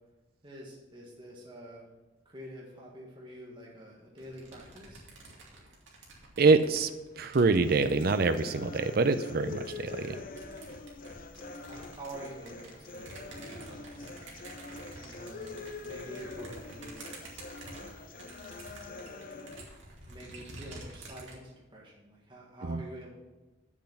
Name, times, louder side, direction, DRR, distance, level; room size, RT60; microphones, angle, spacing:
voice 1, 0.4-1.9 2.2-5.1 11.4-14.1 14.7-15.4 15.8-17.1 17.7-18.1 18.7-19.0 20.0-23.1, right 1 dB, 25° right, -3 dB, 1.5 m, -48 dB
sound 1, 4.2-9.0 9.5-21.4, right 2 dB, 75° right, 2.4 m, -49 dB
voice 2, 6.4-6.9 7.2-10.2 22.7-22.8, right 4 dB, 50° right, 10 dB, 0.5 m, -25 dB
sound 2, 7.6-19.6, left 3 dB, 45° left, 0.6 m, -44 dB
7.8 x 7.3 x 5.8 m, 1.1 s
head